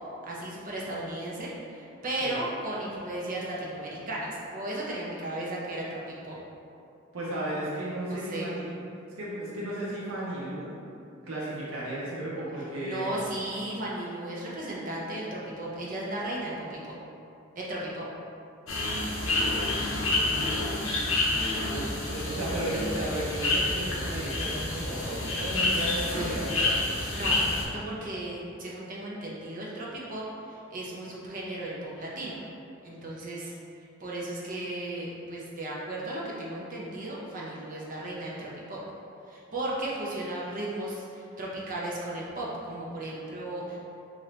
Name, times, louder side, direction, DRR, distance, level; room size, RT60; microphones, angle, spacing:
voice 1, 0.2-6.4 8.1-8.5 12.8-16.9 17.6-18.1 26.1-26.3 27.1-32.4 32.8-33.5 34.0-38.8 39.3-43.8, right 1 dB, 40° right, -5 dB, 0.6 m, -35 dB
voice 2, 7.1-8.7 9.1-10.7 11.2-13.1 19.7-21.0 21.7-26.7, right 1 dB, 85° right, -8 dB, 0.7 m, -34 dB
sound 1, 18.7-27.6, left 2 dB, 65° left, 0.7 m, -28 dB
3.9 x 2.6 x 3.3 m, 2.6 s
head